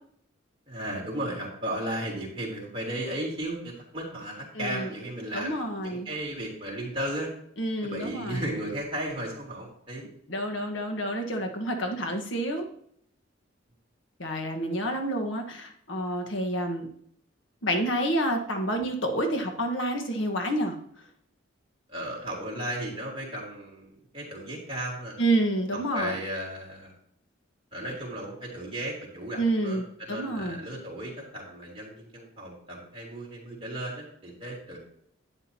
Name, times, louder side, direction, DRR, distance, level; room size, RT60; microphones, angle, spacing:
voice 1, 0.7-7.3 7.8-10.1 21.9-25.2 25.7-26.9 27.7-34.8, right 1 dB, 25° right, -3 dB, 3.4 m, -35 dB
voice 2, 4.5-4.9 5.3-6.1 7.6-8.4 10.3-12.7 14.2-16.9 17.6-20.7 25.2-26.1 29.4-30.6, right 1 dB, 75° left, 4 dB, 1.6 m, -28 dB
11.5 x 9.6 x 3.0 m, 0.67 s
head